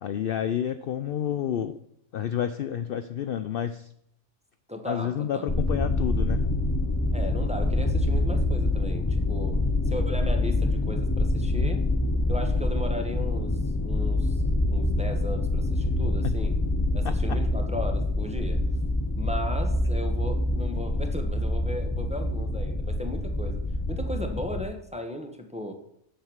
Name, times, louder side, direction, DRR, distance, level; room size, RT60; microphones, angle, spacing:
voice 1, 0.0-1.8 2.1-3.9 4.9-6.5 16.2-16.3 17.0-17.4, left 9 dB, 60° left, 11 dB, 0.6 m, -30 dB
voice 2, 4.7-5.5 7.1-11.9 12.3-16.6 16.9-18.6 19.2-23.6 23.9-25.7, equal, 5° right, 4 dB, 1.2 m, -36 dB
sound 1, 5.5-24.7, left 2 dB, 20° left, 0.5 m, -26 dB
7.8 x 7.7 x 7.2 m, 0.74 s
omnidirectional pair, 1.2 m